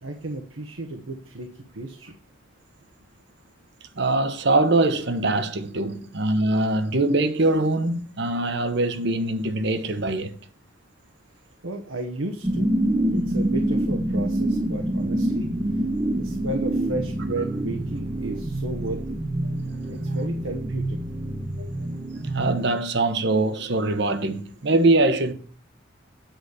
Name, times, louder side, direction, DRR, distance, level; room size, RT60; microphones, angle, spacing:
voice 1, 0.0-2.1 11.6-12.7 13.1-15.5 16.2-19.0 19.9-21.0, right 2 dB, 85° right, 1.1 m, -33 dB
voice 2, 4.0-10.4 19.9-20.2 21.6-21.7 22.2-25.3, right 2 dB, 60° right, 1.0 m, -23 dB
sound 1, 12.4-22.6, right 1 dB, 20° right, 0.8 m, -26 dB
9.2 x 5.0 x 6.3 m
head